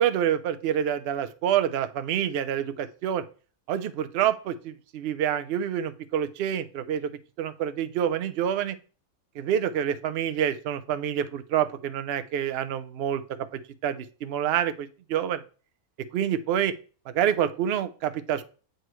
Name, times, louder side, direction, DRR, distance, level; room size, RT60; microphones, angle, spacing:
voice 1, 0.0-3.2 3.7-7.1 7.4-8.8 9.4-13.5 13.8-15.4 16.1-16.7 17.1-18.4, right 9 dB, 65° right, 12 dB, 0.6 m, -27 dB
7.7 x 4.7 x 3.1 m, 0.37 s
omnidirectional pair, 1.6 m